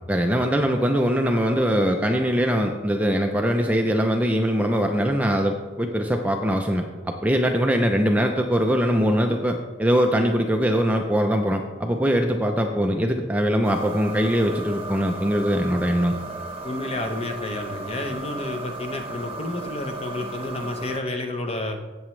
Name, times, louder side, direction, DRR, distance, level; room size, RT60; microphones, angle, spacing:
voice 1, 0.1-16.2, equal, 5° right, 3 dB, 0.5 m, -22 dB
sound 1, 13.6-21.0, right 2 dB, 25° right, 1.0 m, -35 dB
voice 2, 16.6-21.8, left 2 dB, 30° left, 4 dB, 0.9 m, -30 dB
16.0 x 7.0 x 3.2 m, 1.3 s
head